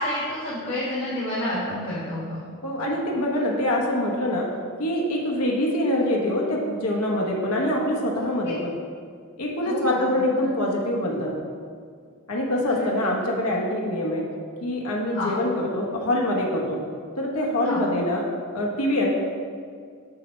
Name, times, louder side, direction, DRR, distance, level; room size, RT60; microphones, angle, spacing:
voice 1, 0.0-2.5 9.6-10.0 12.7-12.9 15.1-15.3 17.6-17.8, left 1 dB, 50° left, -13 dB, 1.8 m, -29 dB
voice 2, 2.6-4.5 4.8-8.7 9.4-11.3 12.3-14.2 14.6-16.8 17.2-18.2 18.5-19.1, left 1 dB, 85° left, -2 dB, 1.0 m, -24 dB
7.6 x 3.1 x 6.2 m, 2.1 s
head